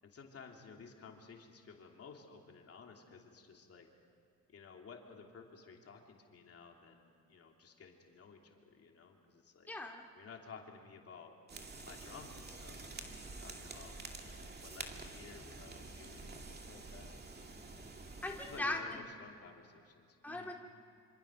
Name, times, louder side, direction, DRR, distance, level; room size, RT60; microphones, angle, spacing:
voice 1, 0.0-3.9 4.5-9.7 10.1-11.3 11.8-17.1 18.4-20.5, left 5 dB, 50° left, 1 dB, 3.0 m, -55 dB
voice 2, 9.7-10.0 18.2-19.0 20.2-20.5, left 2 dB, 5° left, 1 dB, 2.2 m, -39 dB
sound 1, 11.5-18.6, right 3 dB, 35° right, 2.5 m, -48 dB
26.0 x 26.0 x 6.4 m, 2.3 s
cardioid pair, 90°, 30 cm